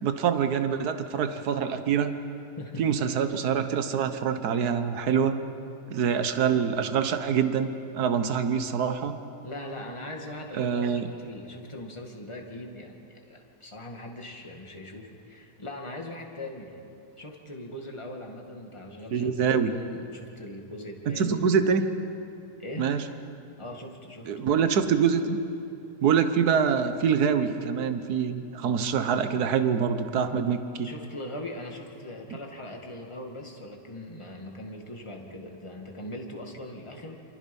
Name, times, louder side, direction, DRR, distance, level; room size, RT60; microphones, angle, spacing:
voice 1, 0.0-2.1 2.8-5.4 5.9-9.2 10.6-11.1 19.1-19.7 21.2-21.8 22.8-23.0 24.3-25.4 26.0-30.9, right 7 dB, 65° right, 9 dB, 1.6 m, -25 dB
voice 2, 9.4-16.8 17.2-21.5 22.6-23.0 23.6-24.3 30.8-37.2, left 1 dB, 15° left, 1 dB, 2.2 m, -40 dB
28.0 x 26.0 x 5.4 m, 2.7 s
omnidirectional pair, 1.8 m